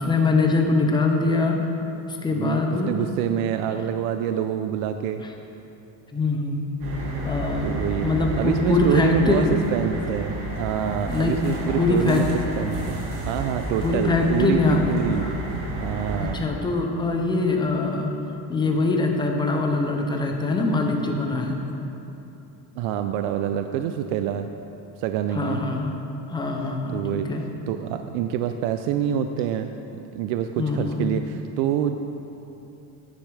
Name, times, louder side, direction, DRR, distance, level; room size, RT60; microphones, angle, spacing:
voice 1, 0.0-1.7 2.1-2.9 3.7-3.8 6.1-6.6 7.2-7.7 8.0-9.5 11.1-12.2 13.8-15.3 16.2-18.1 18.5-21.6 25.3-26.0 26.3-27.4 30.6-31.1, left 3 dB, 10° left, 2 dB, 0.5 m, -23 dB
voice 2, 2.3-5.2 7.6-12.3 12.6-13.0 13.3-15.3 15.8-16.4 22.8-24.5 25.0-25.6 26.9-27.3 27.7-29.7 30.1-32.0, right 9 dB, 75° right, 8 dB, 0.5 m, -26 dB
sound 1, 6.8-16.3, right 1 dB, 55° right, 2.3 m, -31 dB
10.0 x 9.3 x 3.3 m, 2.9 s
cardioid pair, 160°, 46 cm